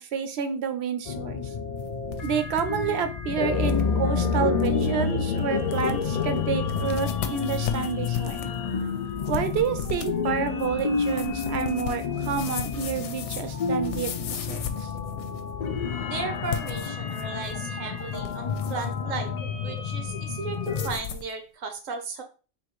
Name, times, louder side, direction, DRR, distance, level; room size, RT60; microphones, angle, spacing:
voice 1, 0.0-1.5 2.2-8.5 9.3-14.9, right 7 dB, 65° right, 9 dB, 0.8 m, -29 dB
sound 1, 1.1-21.0, left 5 dB, 55° left, 0.4 m, -29 dB
sound 2, 1.8-2.6 3.0-3.1 3.6-3.9 4.3-4.4 4.6-4.9 5.4-5.5 5.7-6.2 6.7-15.5 16.4-17.6 18.0-18.9 20.6-21.3, left 8 dB, 70° left, 0.8 m, -37 dB
voice 2, 16.1-19.3 19.6-22.2, right 4 dB, 85° right, 6 dB, 1.3 m, -35 dB
3.5 x 2.6 x 4.5 m, 0.35 s
omnidirectional pair, 1.3 m